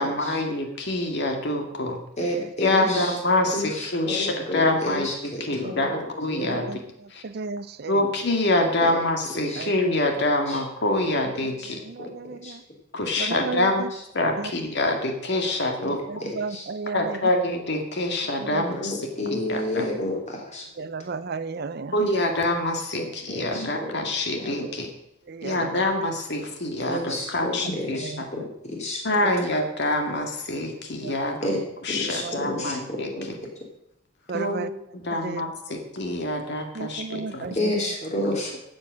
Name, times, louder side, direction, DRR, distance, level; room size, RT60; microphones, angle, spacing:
voice 1, 0.0-2.0 2.6-5.1 5.4-6.8 7.1-7.2 7.9-11.8 12.9-13.8 14.1-16.2 16.9-19.8 21.9-24.9 25.4-28.3 29.0-31.5 31.8-33.4 34.3-37.5 38.2-38.4, left 1 dB, 60° left, 3 dB, 2.0 m, -26 dB
voice 2, 2.2-3.1 3.5-3.7 4.1-6.0 6.3-6.6 8.8-9.0 9.5-9.6 12.0-12.1 12.4-12.5 15.8-15.9 16.5-16.6 18.8-20.6 22.9-23.9 24.4-24.5 26.9-29.0 31.4-31.6 31.9-33.3 37.5-38.6, left 1 dB, 35° left, 0 dB, 3.3 m, -30 dB
voice 3, 6.4-8.0 9.6-9.7 11.9-12.6 13.2-13.9 14.4-14.5 16.1-17.2 18.4-18.6 20.8-22.1 25.3-25.8 27.9-28.5 29.2-29.4 31.0-31.1 32.0-32.8 34.3-34.7 35.1-35.4 36.7-37.9, right 4 dB, 50° right, 14 dB, 0.5 m, -34 dB
13.0 x 8.0 x 6.3 m, 0.79 s
head